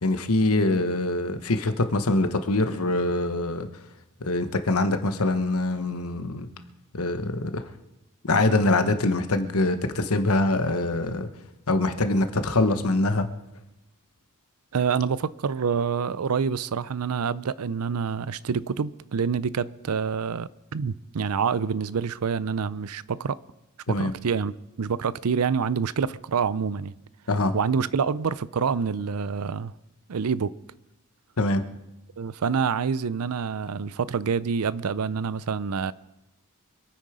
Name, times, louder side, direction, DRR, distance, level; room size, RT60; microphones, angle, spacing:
voice 1, 0.0-3.7 4.2-6.5 6.9-7.6 8.2-11.3 11.7-13.3 23.9-24.1 27.3-27.5 31.4-31.6, left 2 dB, 75° left, 1.1 m, -24 dB
voice 2, 14.7-23.4 23.9-24.5 24.8-26.9 27.5-29.7 30.1-30.6 32.2-35.9, right 6 dB, 85° right, 0.5 m, -27 dB
25.5 x 9.3 x 5.0 m
head